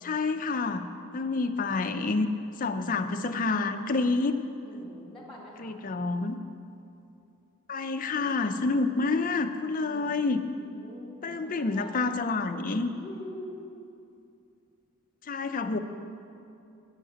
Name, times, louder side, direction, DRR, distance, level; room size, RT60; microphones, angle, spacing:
voice 1, 0.0-0.9 1.1-2.3 2.6-4.4 5.6-6.4 7.7-10.4 11.2-12.9 15.3-15.8, left 3 dB, 40° left, 8 dB, 0.5 m, -28 dB
voice 2, 4.6-5.7 8.7-9.3 9.9-10.1 10.4-12.0 12.9-13.6, left 1 dB, ahead, -5 dB, 2.2 m, -45 dB
8.8 x 6.5 x 7.9 m, 2.6 s
head